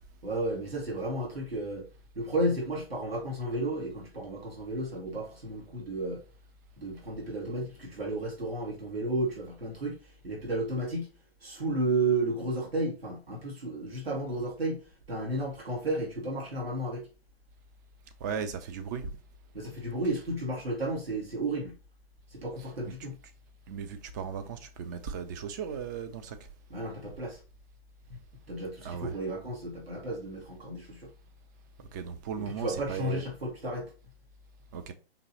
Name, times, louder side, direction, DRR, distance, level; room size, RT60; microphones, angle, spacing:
voice 1, 0.2-1.9 2.2-6.2 6.8-11.1 11.4-14.8 15.1-17.1 19.5-21.7 22.3-23.1 26.7-27.4 28.5-31.1 32.6-33.9, right 2 dB, 75° right, 1.8 m, -33 dB
voice 2, 18.2-19.1 22.6-22.9 23.7-26.4 28.7-29.2 31.9-33.3 34.7-34.9, right 7 dB, 20° right, 0.4 m, -37 dB
5.2 x 3.0 x 2.8 m
figure-of-eight pair, 120°, 30 cm